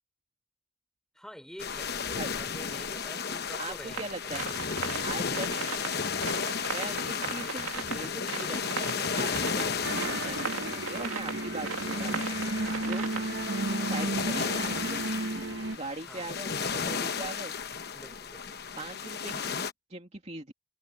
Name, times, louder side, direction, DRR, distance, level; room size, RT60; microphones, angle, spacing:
voice 1, 1.1-4.7 7.2-7.6 13.0-13.3 16.0-16.3 17.9-18.6, equal, ahead, 5.6 m, -48 dB
sound 1, 1.6-19.7, left 6 dB, 50° left, 1.0 m, -34 dB
voice 2, 3.6-4.4 5.0-5.5 6.7-9.7 10.2-12.3 12.8-13.1 13.8-15.0 15.7-17.5 18.8-20.5, right 2 dB, 30° right, 2.8 m, -40 dB
sound 2, 3.9-13.6, right 5 dB, 80° right, 2.6 m, -37 dB
sound 3, 9.8-15.8, right 2 dB, 60° right, 1.2 m, -33 dB
head